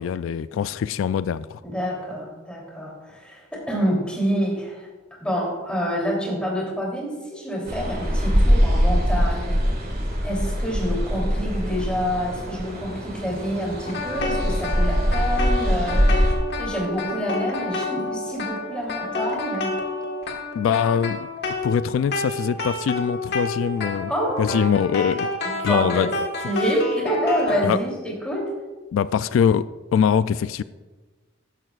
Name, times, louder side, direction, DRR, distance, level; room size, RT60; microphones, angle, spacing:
voice 1, 0.0-1.6 20.5-21.3 21.6-24.1 24.4-25.3 25.6-26.1 27.6-27.8 28.9-30.6, left 7 dB, 85° left, 15 dB, 0.3 m, -23 dB
voice 2, 1.6-4.9 5.2-9.6 10.2-16.2 16.6-19.7 24.1-24.5 25.4-26.1 26.4-28.5, equal, 5° left, -3 dB, 3.1 m, -27 dB
sound 1, 7.7-16.4, equal, 50° right, 1.9 m, -22 dB
sound 2, 13.9-27.7, left 2 dB, 55° left, 1.5 m, -29 dB
13.5 x 11.0 x 2.4 m, 1.3 s
head